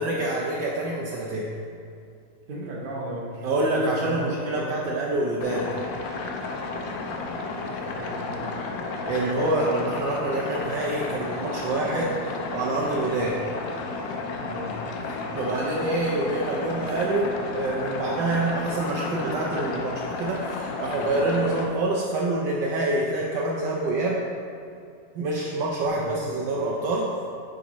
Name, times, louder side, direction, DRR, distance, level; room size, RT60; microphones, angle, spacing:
voice 1, 0.0-1.5 3.4-5.7 9.0-12.1 12.5-13.4 15.1-24.2 25.1-27.1, right 2 dB, 75° right, -4 dB, 1.3 m, -26 dB
voice 2, 2.5-3.5 3.8-4.8 7.7-8.6 14.4-14.8 25.9-26.2, right 1 dB, 50° right, -3 dB, 0.6 m, -35 dB
sound 1, 5.4-21.7, left 3 dB, 90° left, 1.4 m, -32 dB
8.7 x 5.1 x 2.9 m, 2.5 s
omnidirectional pair, 2.0 m